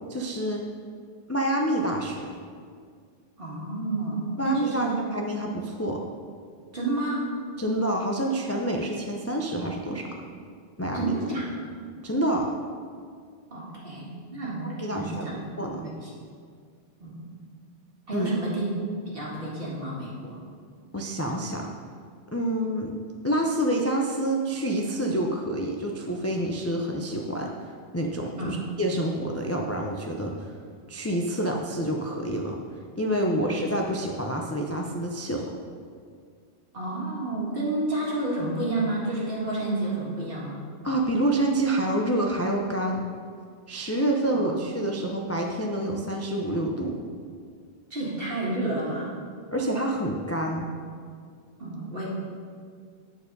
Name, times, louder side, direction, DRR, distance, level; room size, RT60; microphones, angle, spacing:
voice 1, 0.1-0.6 1.3-2.3 4.4-4.9 5.1-6.0 7.6-10.2 10.8-11.1 12.0-12.5 14.8-15.3 15.6-15.8 18.1-18.3 20.9-21.7 22.3-22.9 23.2-30.3 30.9-32.6 33.0-35.5 40.8-43.0 43.7-47.0 49.5-50.7, right 1 dB, 25° left, 0 dB, 0.4 m, -27 dB
voice 2, 3.4-5.0 6.7-7.3 10.9-11.6 13.5-16.1 17.0-17.3 18.1-18.7 19.1-20.4 28.4-28.6 33.3-33.4 36.7-40.6 44.3-44.5 47.9-49.1 51.6-52.1, right 2 dB, 55° right, -5 dB, 2.1 m, -30 dB
8.9 x 4.7 x 5.3 m, 2.1 s
omnidirectional pair, 1.1 m